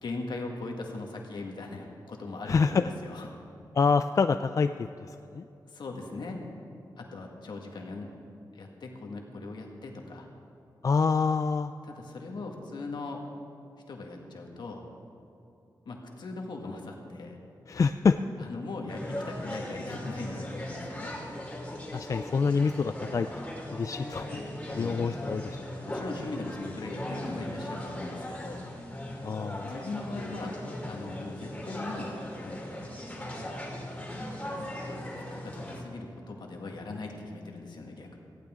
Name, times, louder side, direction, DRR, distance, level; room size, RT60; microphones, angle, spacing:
voice 1, 0.0-3.3 5.7-6.4 7.0-8.1 8.5-10.3 11.8-13.2 13.9-14.9 15.9-17.4 18.4-21.1 24.6-25.0 25.8-28.6 29.6-30.6 30.9-32.1 32.4-32.8 34.6-38.2, left 3 dB, 75° left, 1 dB, 1.9 m, -40 dB
voice 2, 2.5-2.8 3.7-5.4 10.8-11.7 17.7-18.2 21.9-23.3 23.7-24.4 24.8-25.7 29.2-29.8, left 5 dB, 45° left, 9 dB, 0.3 m, -26 dB
sound 1, 18.9-35.8, left 1 dB, 15° left, 2.7 m, -38 dB
18.0 x 15.0 x 3.7 m, 2.7 s
wide cardioid pair, 115°, 8 cm